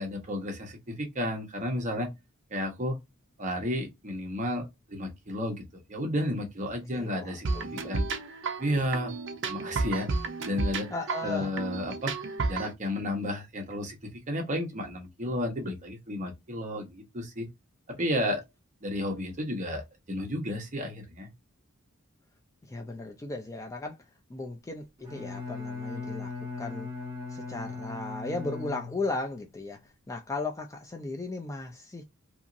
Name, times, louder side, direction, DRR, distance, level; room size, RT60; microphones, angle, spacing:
voice 1, 0.0-2.1 2.5-3.0 3.4-5.6 5.9-8.1 8.6-9.1 9.4-10.2 10.4-10.9 11.2-12.1 12.5-14.0 14.3-17.5 18.0-18.4 18.8-19.8 20.1-21.3, left 1 dB, 35° right, 0.9 m, -32 dB
voice 2, 6.9-7.9 10.9-11.6 22.6-24.0 24.3-26.9 27.3-32.0, left 2 dB, 15° left, 0.3 m, -36 dB
sound 1, 7.4-12.7, right 3 dB, 55° right, 0.5 m, -32 dB
Bowed string instrument, 25.0-29.3, left 4 dB, 20° right, 1.2 m, -38 dB
2.9 x 2.6 x 2.5 m
head